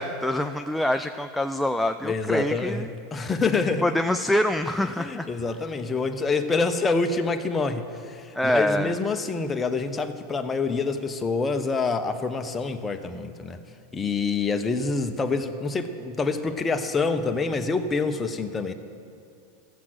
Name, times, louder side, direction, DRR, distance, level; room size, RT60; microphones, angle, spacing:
voice 1, 0.0-2.9 3.8-5.3 8.4-9.0, left 1 dB, ahead, 7 dB, 0.4 m, -25 dB
voice 2, 2.0-2.8 3.1-3.9 5.0-7.8 8.1-13.6 13.9-18.7, left 4 dB, 20° left, 7 dB, 0.9 m, -26 dB
14.5 x 7.4 x 7.8 m, 2.4 s
supercardioid pair, 120°, 0 cm